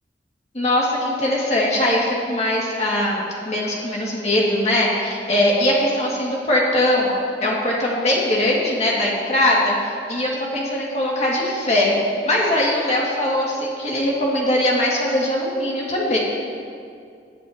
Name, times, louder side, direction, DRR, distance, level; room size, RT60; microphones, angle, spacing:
voice 1, 0.5-7.1 7.4-16.2, left 1 dB, 35° left, -4 dB, 2.1 m, -21 dB
19.0 x 8.4 x 2.9 m, 2.3 s
head